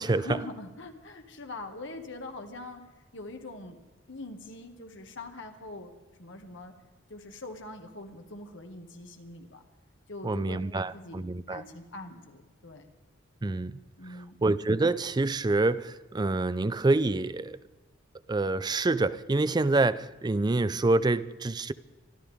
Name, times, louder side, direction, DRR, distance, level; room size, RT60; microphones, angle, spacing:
voice 1, 0.0-2.8 3.1-3.8 4.1-5.9 6.2-6.7 7.1-9.6 10.1-11.2 11.5-12.9 14.0-14.4, left 2 dB, 65° left, 5 dB, 1.9 m, -43 dB
voice 2, 10.2-11.6 13.4-13.7 14.1-17.6 18.3-21.7, right 2 dB, 20° right, 16 dB, 0.4 m, -27 dB
25.0 x 13.0 x 3.6 m, 1.2 s
head